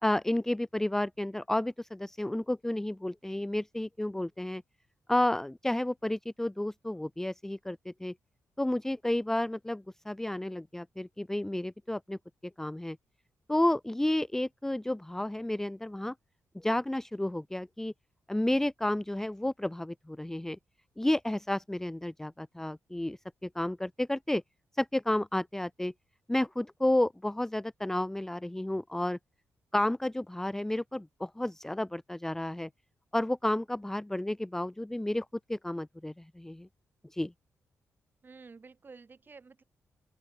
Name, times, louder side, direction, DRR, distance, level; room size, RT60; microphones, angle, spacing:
voice 1, 0.0-4.6 5.1-8.1 8.6-12.2 12.6-13.0 13.5-16.1 16.5-17.9 18.3-20.6 21.0-24.4 24.8-25.9 26.3-29.2 29.7-32.7 33.1-36.7 37.1-37.3, left 1 dB, 5° left, 0.5 m, -31 dB
voice 2, 38.2-39.6, right 4 dB, 35° right, 6.2 m, -51 dB
open air
cardioid pair, 105°, 6 cm